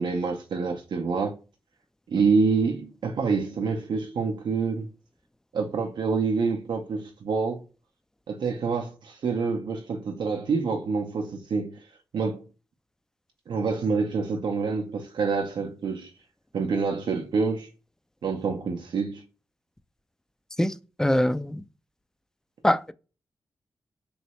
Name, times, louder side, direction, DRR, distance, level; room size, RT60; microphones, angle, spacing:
voice 1, 0.0-1.4 2.1-4.9 5.5-7.6 8.3-11.9 12.1-12.5 13.5-16.1 16.5-17.7 18.2-19.2, right 4 dB, 70° right, 0.5 m, -27 dB
voice 2, 21.0-21.6 22.6-22.9, left 1 dB, 5° left, 0.4 m, -22 dB
3.1 x 3.0 x 2.9 m
supercardioid pair, 45°, 8 cm